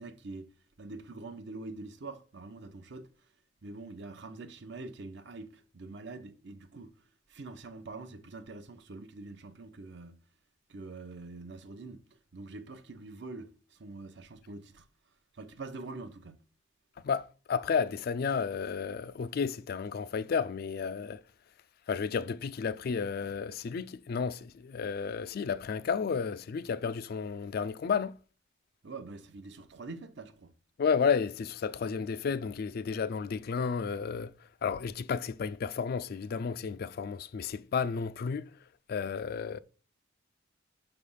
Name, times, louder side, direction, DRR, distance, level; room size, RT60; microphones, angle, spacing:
voice 1, 0.0-3.1 3.6-6.9 7.3-10.2 10.7-12.0 12.3-14.9 15.3-16.4 28.8-30.5, right 3 dB, 65° right, 0.7 m, -45 dB
voice 2, 17.0-21.2 21.9-28.2 30.8-38.5 38.9-39.6, left 6 dB, 50° left, 0.3 m, -32 dB
5.9 x 3.3 x 5.4 m
head